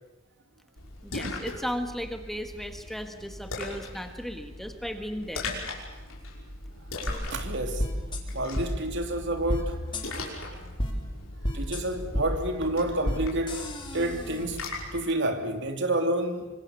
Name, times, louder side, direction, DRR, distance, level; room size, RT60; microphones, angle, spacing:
Splash splatter, 0.8-15.0, left 2 dB, 80° left, 5.8 m, -39 dB
voice 1, 1.0-5.5, equal, ahead, 1.6 m, -35 dB
sound 1, 7.1-7.2 7.8-8.2 8.5-8.7 9.5-9.6 9.9-10.0 10.8-10.9 11.4-11.8 12.1-12.2 13.0-13.2 13.5-14.4, equal, 25° left, 3.8 m, -30 dB
voice 2, 7.3-7.9 8.3-9.8 10.1-10.6 11.5-14.6 14.9-16.5, right 1 dB, 60° right, 2.9 m, -29 dB
26.0 x 25.0 x 7.1 m
head